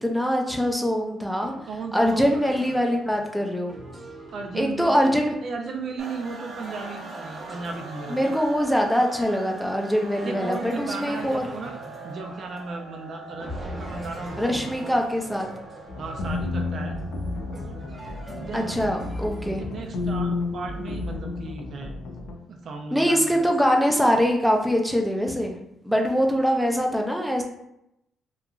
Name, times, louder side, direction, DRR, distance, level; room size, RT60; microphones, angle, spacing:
voice 1, 0.0-1.5 1.9-3.8 4.5-5.3 8.1-11.5 14.4-15.5 18.5-19.6 22.9-25.6 25.8-27.4, equal, ahead, 1 dB, 0.4 m, -23 dB
sound 1, 1.4-8.8 10.1-13.0 13.4-19.9, right 1 dB, 25° right, 0.8 m, -42 dB
voice 2, 1.6-2.3 2.6-2.8 4.3-5.1 5.4-8.3 10.2-11.8 12.0-14.9 16.0-17.0 18.3-18.9 19.6-21.9 22.5-23.5, right 4 dB, 60° right, 3 dB, 0.4 m, -35 dB
sound 2, 6.0-19.4, right 3 dB, 75° right, 0.8 m, -43 dB
sound 3, 15.9-22.3, left 3 dB, 85° left, 0.4 m, -31 dB
2.9 x 2.4 x 2.3 m, 0.81 s
cardioid pair, 90°, 0 cm